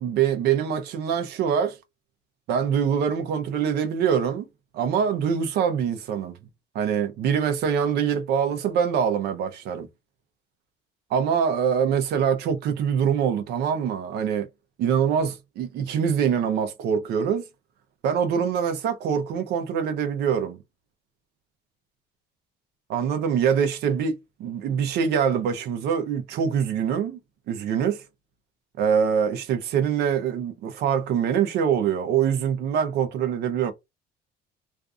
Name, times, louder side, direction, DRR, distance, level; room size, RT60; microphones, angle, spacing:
voice 1, 0.0-1.8 2.5-4.5 4.7-6.4 6.7-9.9 11.1-14.5 14.8-17.4 18.0-20.6 22.9-27.2 27.5-28.0 28.8-33.7, right 7 dB, 60° right, 0.6 m, -24 dB
2.5 x 2.4 x 2.4 m
cardioid pair, 180°, 19 cm